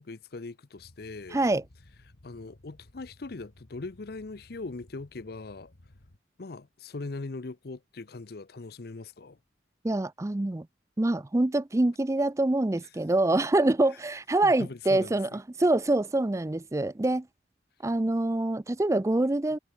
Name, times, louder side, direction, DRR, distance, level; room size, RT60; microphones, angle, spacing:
voice 1, 0.0-1.4 2.2-5.7 6.4-9.4 14.4-15.4, left 3 dB, 60° left, 0.7 m, -40 dB
sound 1, 0.8-6.2, left 1 dB, 85° left, 1.8 m, -57 dB
voice 2, 1.3-1.6 9.8-10.7 11.0-17.3 17.8-19.6, right 2 dB, 15° right, 0.4 m, -25 dB
head